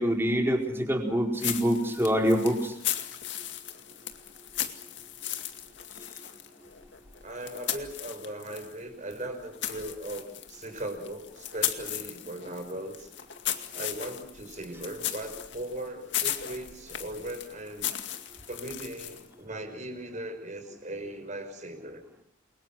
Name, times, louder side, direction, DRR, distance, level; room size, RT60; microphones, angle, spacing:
voice 1, 0.0-2.7, equal, 10° right, 2 dB, 4.4 m, -25 dB
sound 1, 1.4-8.8 9.1-19.3, left 11 dB, 65° left, 2.2 m, -36 dB
voice 2, 7.2-13.1 13.7-17.9 18.5-22.0, right 1 dB, 40° right, 6 dB, 5.8 m, -38 dB
29.0 x 23.5 x 6.1 m, 0.65 s
head